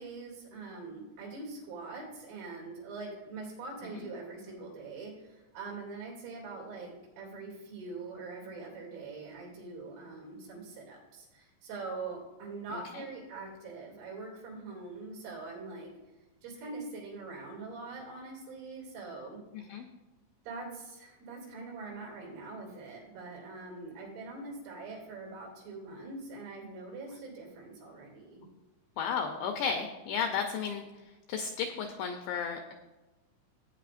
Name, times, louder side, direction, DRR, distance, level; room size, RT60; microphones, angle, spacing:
voice 1, 0.0-15.9 16.4-19.4 20.5-28.5, right 3 dB, 90° right, -3 dB, 5.4 m, -43 dB
voice 2, 12.7-13.0 19.5-19.9 29.0-30.8 31.3-32.6, left 6 dB, 85° left, 4 dB, 2.4 m, -33 dB
16.5 x 9.0 x 2.5 m, 1.1 s
omnidirectional pair, 5.8 m